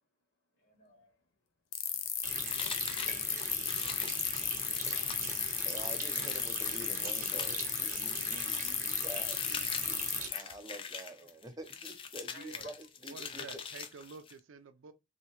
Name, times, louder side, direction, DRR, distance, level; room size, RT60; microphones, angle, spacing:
voice 1, 0.6-1.2 2.0-2.6 2.9-5.3 11.2-11.3 12.3-12.7, equal, 60° left, 1.5 m, -59 dB
sound 1, 1.7-10.4, left 10 dB, 90° left, 0.5 m, -34 dB
Water tap faucet, 2.2-10.3, right 5 dB, 40° right, 0.9 m, -42 dB
sound 2, 2.5-14.4, left 6 dB, 25° left, 0.3 m, -44 dB
voice 2, 5.6-9.4 10.3-12.7 13.0-13.6, right 1 dB, 20° right, 0.6 m, -47 dB
voice 3, 13.1-14.9, right 5 dB, 85° right, 0.4 m, -49 dB
3.2 x 2.8 x 2.8 m
head